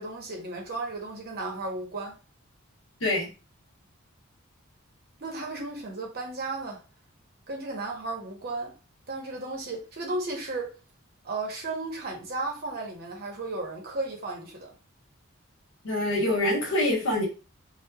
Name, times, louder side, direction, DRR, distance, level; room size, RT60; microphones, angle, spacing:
voice 1, 0.0-2.2 5.2-6.8 7.5-8.7 9.1-10.8 11.2-14.7, right 2 dB, 45° right, 0.7 m, -34 dB
voice 2, 15.8-17.3, left 1 dB, 65° left, 1.0 m, -25 dB
2.8 x 2.0 x 2.2 m
head